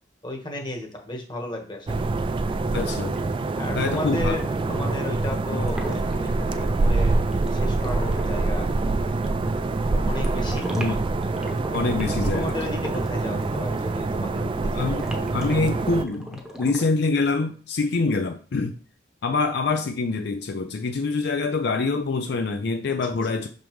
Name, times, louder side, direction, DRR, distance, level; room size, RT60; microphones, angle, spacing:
voice 1, 0.2-2.1 3.5-4.4 4.7-7.2 7.5-8.7 10.0-10.8 11.7-14.9 22.9-23.0, left 1 dB, 25° left, 1.3 m, -34 dB
sound 1, 1.9-16.0, right 3 dB, 30° right, 0.3 m, -25 dB
voice 2, 2.7-3.2 3.7-4.4 10.7-10.9 11.7-12.5 14.7-15.0 15.3-18.8 19.2-23.5, left 3 dB, 65° left, 0.5 m, -25 dB
sound 2, 3.1-13.9 15.0-16.8, equal, ahead, 0.9 m, -38 dB
6.2 x 5.3 x 3.1 m
head